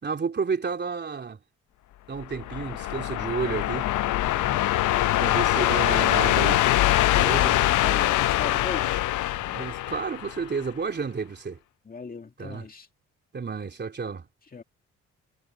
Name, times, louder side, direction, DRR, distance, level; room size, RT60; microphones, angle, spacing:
voice 1, 0.0-1.4 2.1-3.9 5.2-6.6 7.1-7.6 9.4-11.6 12.4-12.6 13.3-14.3, right 5 dB, 35° right, 3.2 m, -31 dB
sound 1, 2.2-10.7, left 15 dB, 80° left, 0.8 m, -23 dB
voice 2, 4.3-4.8 7.8-9.0 11.9-12.9 14.5-14.6, left 4 dB, 30° left, 2.2 m, -39 dB
cardioid pair, 90°, 30 cm